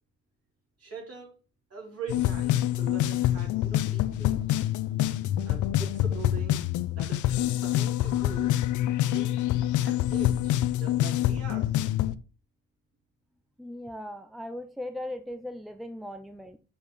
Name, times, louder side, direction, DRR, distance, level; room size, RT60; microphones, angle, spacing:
voice 1, 0.8-1.3 1.7-4.7 5.1-6.6 6.9-8.5 9.0-9.3 9.8-12.0, right 4 dB, 55° right, -2 dB, 4.3 m, -43 dB
sound 1, 2.1-12.1, left 13 dB, 75° left, 0.6 m, -26 dB
voice 2, 13.6-16.6, left 1 dB, ahead, 9 dB, 0.6 m, -38 dB
6.7 x 5.2 x 4.1 m, 0.33 s
cardioid pair, 90°, 30 cm